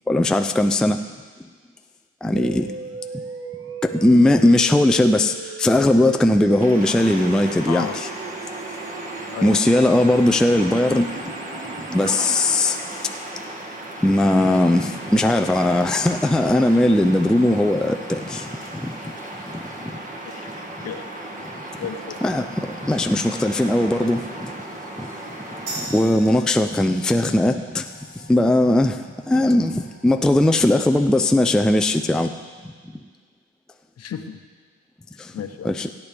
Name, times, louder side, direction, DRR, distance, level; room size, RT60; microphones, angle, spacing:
voice 1, 0.1-1.0 2.2-2.7 3.9-5.3 5.6-8.1 9.4-11.1 11.9-12.8 14.0-18.5 18.8-18.9 22.2-22.5 22.9-24.5 25.9-27.8 28.3-28.9 29.3-32.3 35.6-35.9, left 1 dB, ahead, 6 dB, 0.4 m, -18 dB
sound 1, 2.4-12.4, right 5 dB, 45° right, 1.0 m, -37 dB
sound 2, 6.6-25.9, right 1 dB, 25° right, 1.8 m, -35 dB
voice 2, 7.7-8.0 9.3-9.7 20.2-20.3 20.8-21.0 21.8-22.2 34.0-34.4 35.3-35.7, left 7 dB, 55° left, 7 dB, 1.0 m, -32 dB
sound 3, 25.7-32.8, right 2 dB, 80° right, 2.4 m, -42 dB
17.0 x 9.6 x 3.5 m, 1.5 s
cardioid pair, 90°, 30 cm